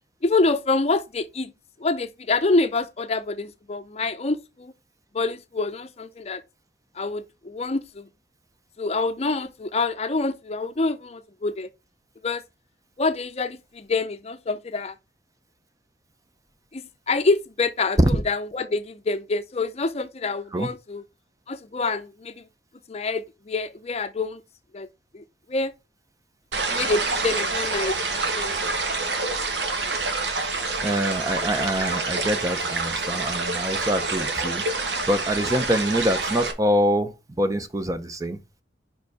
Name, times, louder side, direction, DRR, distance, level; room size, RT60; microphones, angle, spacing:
voice 1, 0.2-1.5 1.8-4.7 5.1-6.4 7.0-8.1 8.8-11.7 12.2-12.4 13.0-14.9 16.7-21.0 21.5-22.5 22.9-24.4 24.7-24.9 25.1-25.7 26.7-28.0 28.4-28.6 28.9-29.1, left 3 dB, 35° left, 0.6 m, -26 dB
sound 1, 26.5-36.5, right 3 dB, 75° right, 1.5 m, -27 dB
voice 2, 30.8-34.6 35.1-38.4, equal, 20° right, 0.7 m, -24 dB
5.2 x 4.9 x 4.8 m
head